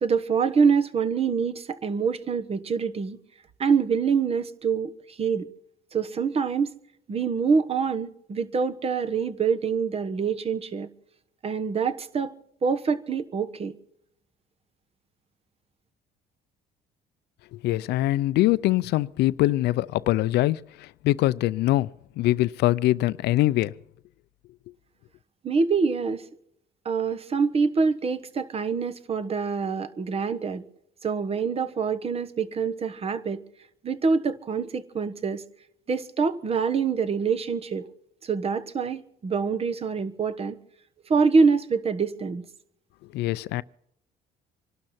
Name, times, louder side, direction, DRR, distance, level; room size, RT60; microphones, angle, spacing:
voice 1, 0.0-3.2 3.6-5.5 5.9-6.7 7.1-10.9 11.4-12.3 12.6-13.7 25.4-26.3 26.8-30.6 31.0-33.4 33.8-35.4 35.9-37.9 38.2-40.6 41.1-42.5, right 5 dB, 35° right, 1.2 m, -25 dB
voice 2, 17.5-23.7 43.1-43.6, left 16 dB, 80° left, 0.5 m, -23 dB
26.5 x 12.0 x 4.4 m
cardioid pair, 110°, 17 cm